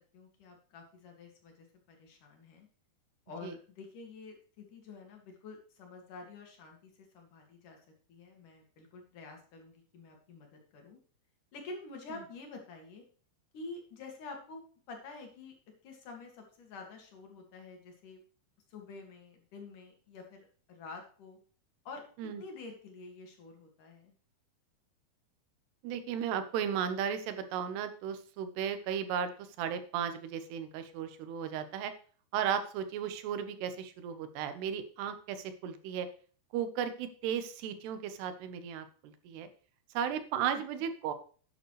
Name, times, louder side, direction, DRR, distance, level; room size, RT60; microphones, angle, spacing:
voice 1, 0.1-2.7 3.3-7.8 8.1-11.0 11.5-13.0 13.5-14.6 14.9-15.6 15.8-18.2 18.7-21.4 21.8-24.1 40.8-40.9, left 3 dB, 55° left, 2 dB, 3.3 m, -48 dB
voice 2, 25.8-31.9 32.3-36.1 36.5-39.5 39.9-41.1, right 8 dB, 90° right, 9 dB, 3.1 m, -35 dB
12.0 x 9.3 x 3.2 m, 0.42 s
omnidirectional pair, 4.6 m